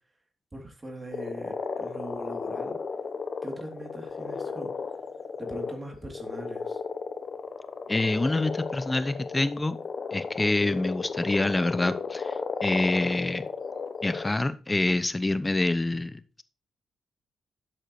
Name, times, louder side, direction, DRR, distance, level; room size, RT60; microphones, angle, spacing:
voice 1, 0.5-2.8 3.4-4.7 5.4-6.8, right 1 dB, 25° right, 2 dB, 3.2 m, -41 dB
sound 1, 1.1-14.3, left 5 dB, 55° left, 1.0 m, -34 dB
voice 2, 7.9-9.8 10.1-12.4 12.6-13.4 14.0-16.4, left 2 dB, 20° left, 13 dB, 0.8 m, -26 dB
11.5 x 7.6 x 3.2 m, 0.36 s
hypercardioid pair, 45°, 0 cm